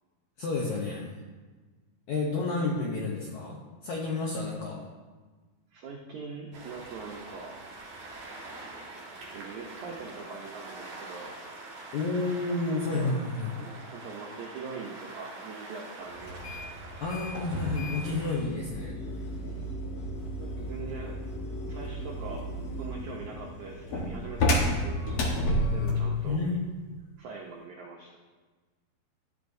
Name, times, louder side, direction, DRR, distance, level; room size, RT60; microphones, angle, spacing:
voice 1, 0.4-1.1 2.1-4.8 11.9-13.5 17.0-18.9 26.2-26.6, left 3 dB, 75° left, -2 dB, 1.7 m, -30 dB
voice 2, 5.7-7.5 9.3-11.4 12.9-13.1 13.6-16.7 20.4-21.2 21.7-22.5 22.8-26.4 27.2-28.2, right 4 dB, 80° right, -2 dB, 1.7 m, -42 dB
sound 1, 6.5-18.3, right 2 dB, 55° right, 3.0 m, -44 dB
sound 2, 16.2-26.1, left 1 dB, 60° left, 1.8 m, -32 dB
12.5 x 9.5 x 2.7 m, 1.3 s
omnidirectional pair, 4.6 m